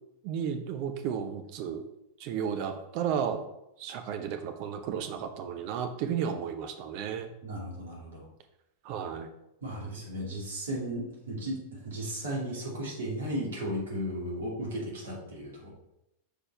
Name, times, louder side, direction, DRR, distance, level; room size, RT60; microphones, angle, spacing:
voice 1, 0.2-1.8 2.2-3.5 3.8-7.3 8.8-9.3, right 8 dB, 45° right, 7 dB, 0.8 m, -33 dB
voice 2, 7.4-8.3 9.6-15.7, right 1 dB, 65° right, -2 dB, 2.6 m, -35 dB
7.0 x 4.4 x 4.4 m, 0.84 s
figure-of-eight pair, 90°, 0 cm